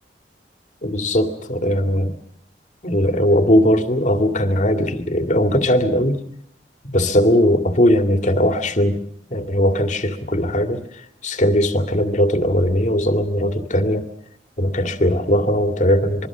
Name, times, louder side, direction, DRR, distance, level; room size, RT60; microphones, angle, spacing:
voice 1, 0.8-2.1 2.8-6.2 6.8-9.0 9.3-14.0 14.6-16.3, equal, 45° left, 7 dB, 2.3 m, -19 dB
26.0 x 23.0 x 6.2 m, 0.67 s
head